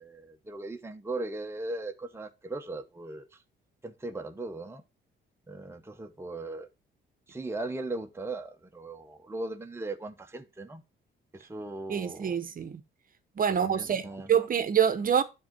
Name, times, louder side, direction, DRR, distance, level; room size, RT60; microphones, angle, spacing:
voice 1, 0.0-3.3 3.8-4.8 5.5-6.7 7.3-10.8 11.3-12.4 13.6-14.3, right 2 dB, 10° right, 0.9 m, -38 dB
voice 2, 11.9-12.8 13.4-15.2, right 8 dB, 45° right, 0.9 m, -26 dB
10.0 x 3.8 x 4.5 m
cardioid pair, 90°, 20 cm